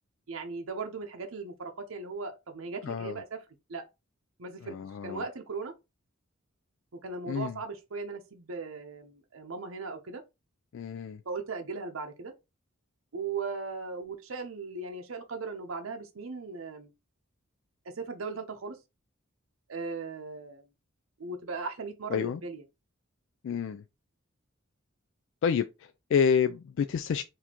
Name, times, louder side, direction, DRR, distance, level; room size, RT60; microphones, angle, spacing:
voice 1, 0.3-3.4 3.7-3.8 4.4-4.7 5.0-5.7 7.0-10.2 11.2-12.3 13.1-16.9 18.0-18.8 19.7-20.6 21.2-22.6, right 4 dB, 75° right, 0.7 m, -38 dB
voice 2, 2.8-3.2 4.6-5.2 7.3-7.6 10.7-11.2 22.1-22.4 23.4-23.8 25.4-27.2, left 7 dB, 65° left, 0.3 m, -29 dB
4.1 x 2.7 x 2.9 m
head